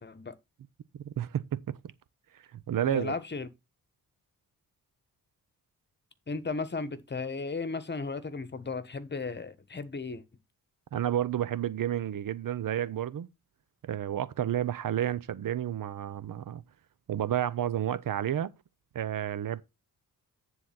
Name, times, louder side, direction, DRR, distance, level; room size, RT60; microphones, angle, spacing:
voice 1, 0.0-0.3 2.9-3.5 6.3-10.2, left 4 dB, 30° left, 1.2 m, -35 dB
voice 2, 0.9-1.6 2.5-3.1 10.9-13.3 13.8-16.6 17.1-18.5 18.9-19.6, right 11 dB, 65° right, 0.7 m, -31 dB
9.9 x 4.0 x 5.9 m
cardioid pair, 105°, 36 cm